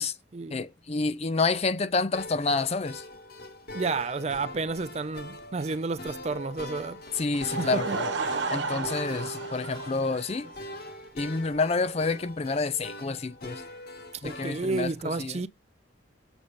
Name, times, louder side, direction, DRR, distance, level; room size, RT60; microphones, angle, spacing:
voice 1, 0.5-3.0 7.1-8.1 8.5-10.5 11.1-13.6 14.2-15.4, left 3 dB, 35° left, 0.5 m, -28 dB
sound 1, 2.1-14.8, left 1 dB, 50° left, 1.4 m, -42 dB
voice 2, 3.7-8.0 8.2-8.4 14.2-15.5, right 3 dB, 35° right, 0.4 m, -31 dB
Laughter / Crowd, 7.3-10.8, right 4 dB, 75° right, 1.0 m, -33 dB
7.0 x 3.8 x 5.1 m
head